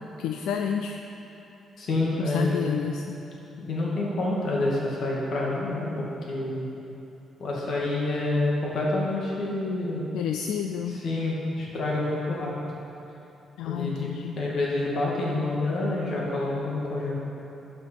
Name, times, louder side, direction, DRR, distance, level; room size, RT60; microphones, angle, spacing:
voice 1, 0.2-1.0 2.2-3.2 10.1-11.0 13.6-14.4, left 8 dB, 90° left, 4 dB, 0.4 m, -30 dB
voice 2, 1.8-2.7 3.6-5.9 6.3-6.6 7.4-10.0 10.9-12.5 13.6-17.1, left 2 dB, 65° left, -4 dB, 2.0 m, -28 dB
11.5 x 5.6 x 4.5 m, 3.0 s
cardioid pair, 105°, 0 cm